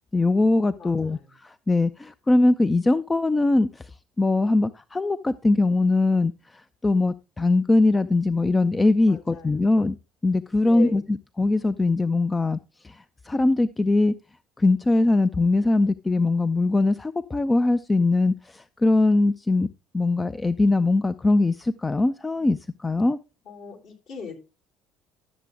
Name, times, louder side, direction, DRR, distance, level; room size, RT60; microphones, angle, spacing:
voice 1, 0.1-3.9 4.2-10.0 10.2-12.6 12.8-14.1 14.6-19.7 19.9-23.2, left 2 dB, 15° left, 14 dB, 0.4 m, -21 dB
voice 2, 0.8-1.3 9.1-9.7 10.6-11.0 23.4-24.3, left 5 dB, 55° left, 0 dB, 3.4 m, -38 dB
12.0 x 7.4 x 3.4 m, 0.29 s
figure-of-eight pair, 60°, 0 cm